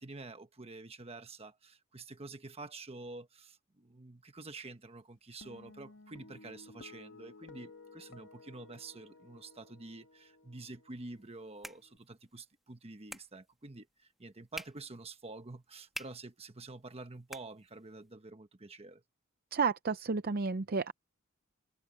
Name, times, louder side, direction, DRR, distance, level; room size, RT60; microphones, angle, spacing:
voice 1, 0.0-19.0, right 3 dB, 30° right, 1.1 m, -48 dB
Guitar, 5.4-12.0, left 3 dB, 65° left, 2.5 m, -56 dB
sound 1, 11.1-18.1, equal, ahead, 1.5 m, -51 dB
voice 2, 19.5-20.9, right 5 dB, 45° right, 0.6 m, -31 dB
head